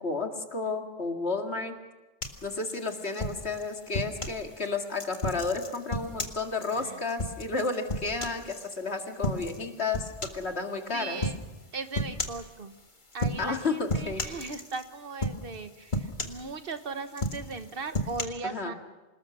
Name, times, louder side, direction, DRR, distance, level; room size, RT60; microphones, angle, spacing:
voice 1, 0.0-1.7 2.4-11.2 13.4-14.2 18.4-18.7, left 3 dB, 60° left, 4 dB, 2.4 m, -32 dB
sound 1, 2.2-4.4 4.9-8.8 9.2-9.6 9.9-10.5 11.2-11.4 11.9-12.5 13.1-13.6 13.9-14.9 15.2-15.6 15.9-16.8 17.1-18.2, left 1 dB, 40° left, 2.0 m, -33 dB
voice 2, 10.9-11.4 11.7-12.7 13.1-15.9 16.2-18.7, right 4 dB, 50° right, 9 dB, 1.5 m, -38 dB
27.5 x 19.5 x 6.3 m, 1.1 s
omnidirectional pair, 1.2 m